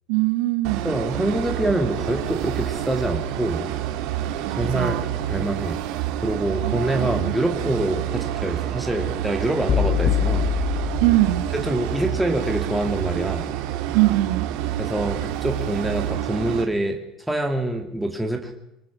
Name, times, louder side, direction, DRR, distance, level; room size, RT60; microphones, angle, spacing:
voice 1, 0.1-0.9 4.4-5.1 6.6-7.3 11.0-11.4 13.9-14.5, right 17 dB, 90° right, 1.6 m, -22 dB
sound 1, 0.6-16.6, right 12 dB, 75° right, 3.0 m, -28 dB
voice 2, 0.8-3.6 4.6-5.0 5.3-5.8 6.2-10.5 11.5-13.5 14.8-17.0 17.3-18.5, right 1 dB, 5° right, 2.3 m, -25 dB
sound 2, 9.7-11.9, left 9 dB, 30° left, 0.7 m, -24 dB
23.5 x 19.0 x 6.2 m
cardioid pair, 140°, 0 cm